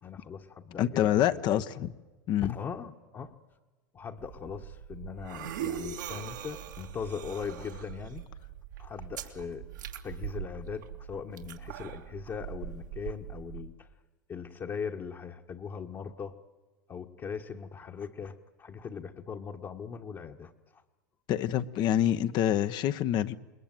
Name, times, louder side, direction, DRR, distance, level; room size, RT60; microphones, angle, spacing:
voice 1, 0.0-1.6 2.4-3.4 3.9-8.3 8.8-9.7 10.0-13.9 14.3-16.4 16.9-20.8, left 6 dB, 35° left, -1 dB, 1.6 m, -40 dB
voice 2, 0.8-1.9 2.3-2.5 21.3-23.3, left 11 dB, 50° left, 11 dB, 1.2 m, -26 dB
sound 1, 4.2-13.7, right 9 dB, 85° right, 2.6 m, -41 dB
28.0 x 21.0 x 9.2 m, 1.2 s
hypercardioid pair, 90°, 10 cm